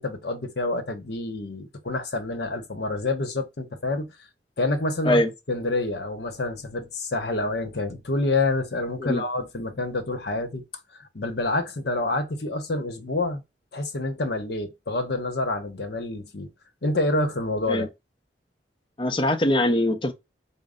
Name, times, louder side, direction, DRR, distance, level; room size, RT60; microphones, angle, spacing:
voice 1, 0.0-4.1 4.6-5.2 5.5-10.6 11.0-13.4 13.7-16.5 16.8-17.9, left 2 dB, 65° left, 0.9 m, -27 dB
voice 2, 19.0-20.1, left 1 dB, 30° left, 0.7 m, -22 dB
5.1 x 2.1 x 3.6 m
head